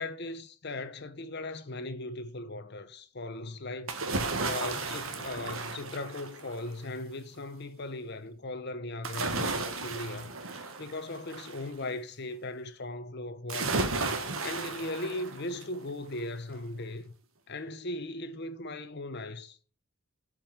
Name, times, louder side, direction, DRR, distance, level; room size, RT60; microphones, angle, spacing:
voice 1, 0.0-4.1 4.4-17.0 17.5-19.6, left 2 dB, 50° left, 0.9 m, -38 dB
sound 1, 3.9-6.7 9.0-11.7 13.5-15.8 16.2-16.3, right 3 dB, 70° right, 1.4 m, -34 dB
7.5 x 5.4 x 7.2 m
head